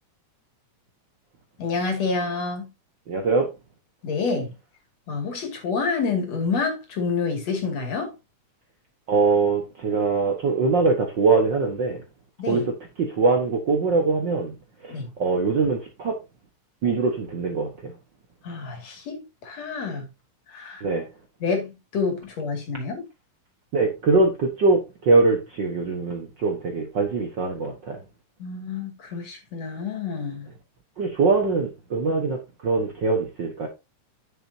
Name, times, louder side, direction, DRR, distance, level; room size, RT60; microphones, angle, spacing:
voice 1, 1.6-2.7 4.0-4.5 5.1-8.1 12.4-12.7 14.9-15.1 18.4-20.1 20.5-20.8 21.4-23.0 28.4-30.5, left 4 dB, 60° left, 3.3 m, -28 dB
voice 2, 3.1-3.5 9.1-12.0 12.5-14.5 14.8-16.2 16.8-17.9 20.8-21.1 23.7-28.0 31.0-33.7, right 3 dB, 50° right, 1.4 m, -22 dB
9.2 x 7.7 x 2.7 m
omnidirectional pair, 3.5 m